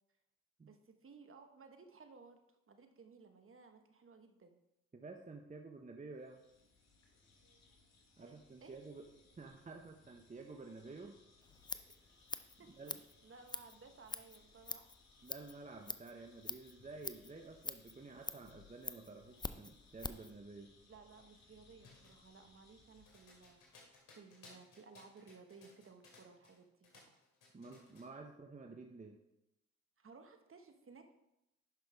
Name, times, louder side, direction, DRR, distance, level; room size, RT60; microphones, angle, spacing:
voice 1, 0.6-2.4 2.7-4.6 8.2-8.7 12.6-12.7 13.2-14.9 20.8-23.6 24.2-27.2 30.0-31.1, right 4 dB, 40° right, 6 dB, 1.3 m, -58 dB
voice 2, 4.9-6.4 8.2-9.0 9.4-11.2 12.7-13.0 15.2-20.7 27.5-29.2, right 3 dB, 25° right, 3 dB, 1.0 m, -51 dB
sound 1, 6.2-23.9, left 3 dB, 50° left, 2.2 m, -67 dB
Scissors, 11.4-20.3, left 3 dB, 15° left, 0.5 m, -46 dB
sound 2, 21.8-26.6 26.8-28.1, left 3 dB, 75° left, 2.6 m, -62 dB
10.5 x 5.7 x 3.5 m, 0.86 s
hypercardioid pair, 50°, 33 cm